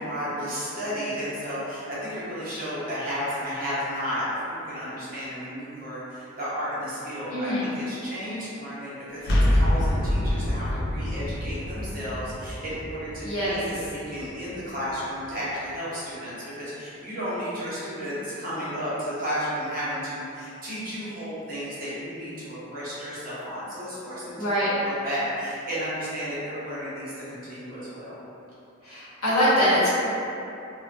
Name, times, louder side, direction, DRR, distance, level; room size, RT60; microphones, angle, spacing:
voice 1, 0.0-24.5 24.8-28.1, equal, 40° right, -10 dB, 0.7 m, -33 dB
voice 2, 7.3-7.7 13.2-13.6 24.4-24.7 28.8-29.9, equal, 85° left, -10 dB, 0.9 m, -23 dB
sound 1, 9.2-14.9, left 1 dB, 45° left, 0.3 m, -26 dB
2.3 x 2.1 x 2.5 m, 2.8 s
head